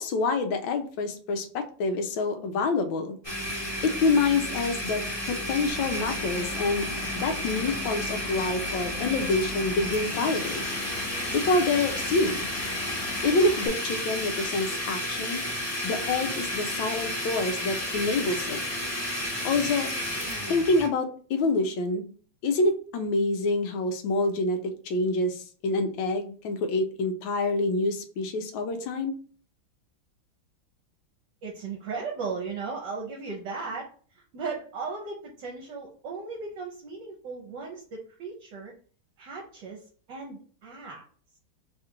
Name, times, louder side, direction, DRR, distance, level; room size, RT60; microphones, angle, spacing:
voice 1, 0.0-3.2 3.8-6.9 7.1-10.6 11.3-12.5 13.2-15.4 15.8-18.6 19.4-20.1 20.5-22.1 22.4-29.1, left 3 dB, 80° left, 6 dB, 1.4 m, -27 dB
Domestic sounds home sounds, 3.2-20.9, left 1 dB, 15° left, 1.0 m, -32 dB
Vehicle / Engine, 5.7-13.7, left 5 dB, 60° left, 1.3 m, -40 dB
voice 2, 31.4-33.9 34.1-38.7 39.2-41.0, right 4 dB, 70° right, -1 dB, 1.4 m, -36 dB
3.6 x 2.4 x 4.3 m, 0.43 s
omnidirectional pair, 2.1 m